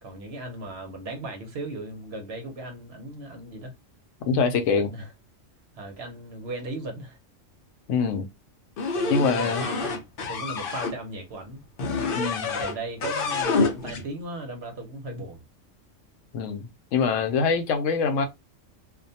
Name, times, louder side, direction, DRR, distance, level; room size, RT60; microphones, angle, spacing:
voice 1, 0.0-3.7 4.8-5.1 5.8-7.2 8.9-10.0 10.3-11.6 12.5-15.4, right 2 dB, 60° right, 1.0 m, -37 dB
voice 2, 4.3-4.9 7.9-8.3 9.1-9.6 12.1-12.5 16.3-18.3, left 5 dB, 80° left, 0.9 m, -24 dB
sound 1, 8.8-10.9 11.8-12.8 13.0-14.0, left 4 dB, 55° left, 0.7 m, -27 dB
2.5 x 2.2 x 2.7 m
omnidirectional pair, 1.3 m